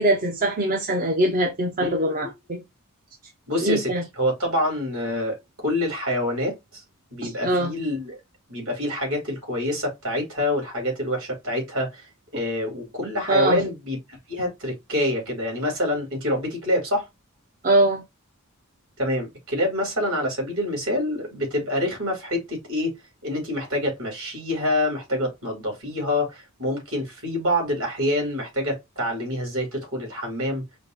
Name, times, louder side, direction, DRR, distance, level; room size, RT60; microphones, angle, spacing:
voice 1, 0.0-2.6 3.6-4.0 7.2-7.7 13.3-13.6 17.6-18.0, right 1 dB, 40° right, 0.7 m, -22 dB
voice 2, 1.8-2.3 3.5-5.4 5.6-6.5 7.1-8.2 8.5-12.0 12.3-17.1 19.0-22.9 23.2-30.6, left 1 dB, 65° right, 3.2 m, -26 dB
5.1 x 2.1 x 4.0 m
head